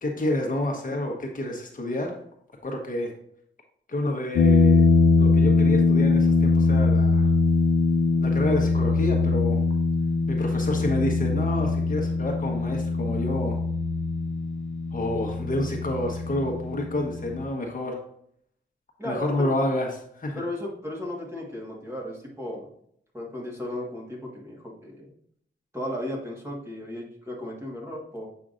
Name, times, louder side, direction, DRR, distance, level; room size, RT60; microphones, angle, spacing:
voice 1, 0.0-2.2 2.6-3.1 3.9-4.8 5.2-7.3 8.2-9.6 10.3-13.6 14.9-18.0 19.0-20.4, left 1 dB, 45° left, 0 dB, 1.2 m, -29 dB
sound 1, 4.4-17.5, left 3 dB, 85° left, 0.6 m, -22 dB
voice 2, 19.0-19.5 20.3-22.7 23.1-25.1 25.7-28.3, left 1 dB, 15° right, -3 dB, 1.7 m, -35 dB
7.4 x 5.6 x 2.6 m, 0.67 s
wide cardioid pair, 135°, 19 cm